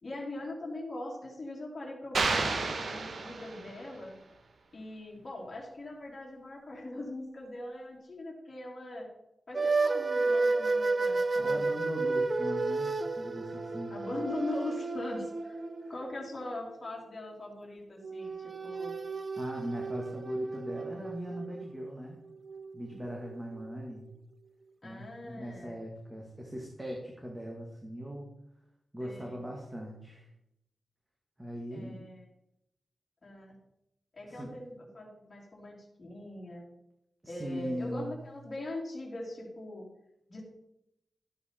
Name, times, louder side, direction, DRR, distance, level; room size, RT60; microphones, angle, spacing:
voice 1, 0.0-4.2 4.7-9.1 9.5-11.6 13.9-15.6 15.9-19.0 24.8-25.8 29.0-29.5 31.7-32.3 33.2-33.6 34.1-36.6 37.3-39.9 40.3-40.4, left 1 dB, 35° left, -3 dB, 3.0 m, -41 dB
sound 1, 2.1-3.9, right 4 dB, 65° right, 1.3 m, -31 dB
sound 2, 9.5-16.9 18.0-24.1, right 3 dB, 40° right, 0.6 m, -32 dB
voice 2, 11.4-13.9 15.8-15.9 19.4-22.2 22.7-24.1 24.8-28.3 28.9-30.3 31.4-32.1 34.3-34.5 37.2-38.1, equal, 15° right, -1 dB, 2.0 m, -40 dB
13.0 x 8.4 x 4.5 m, 0.82 s
wide cardioid pair, 125°, 0 cm